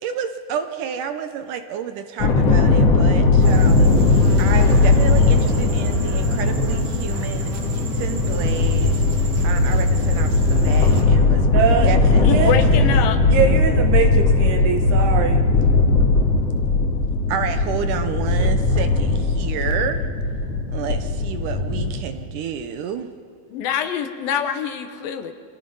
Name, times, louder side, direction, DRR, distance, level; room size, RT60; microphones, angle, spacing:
voice 1, 0.0-11.5 11.8-13.0 17.3-20.1 20.7-23.1, right 8 dB, 70° right, 8 dB, 2.1 m, -30 dB
sound 1, 2.2-22.0, left 3 dB, 50° left, 2.5 m, -18 dB
sound 2, 3.4-11.0, right 4 dB, 50° right, 2.2 m, -36 dB
voice 2, 11.5-11.9 12.3-12.5 13.2-15.4, right 6 dB, 85° right, 5 dB, 3.5 m, -22 dB
voice 3, 12.2-13.2 23.5-25.3, left 8 dB, 75° left, 8 dB, 2.7 m, -25 dB
29.0 x 23.5 x 5.5 m, 2.1 s
omnidirectional pair, 4.4 m